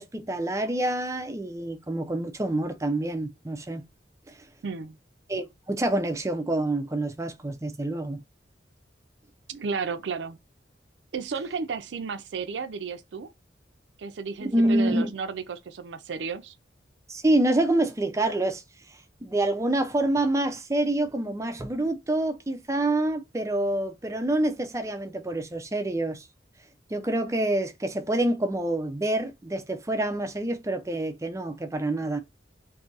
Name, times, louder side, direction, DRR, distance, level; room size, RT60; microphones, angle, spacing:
voice 1, 0.0-3.8 4.3-4.4 5.3-8.2 14.4-15.1 17.1-18.6 19.2-26.3 26.9-32.2, right 1 dB, 15° right, 0.4 m, -27 dB
voice 2, 4.6-5.0 9.5-10.4 11.1-13.3 14.0-16.5, right 5 dB, 80° right, 0.4 m, -33 dB
2.7 x 2.5 x 3.9 m
head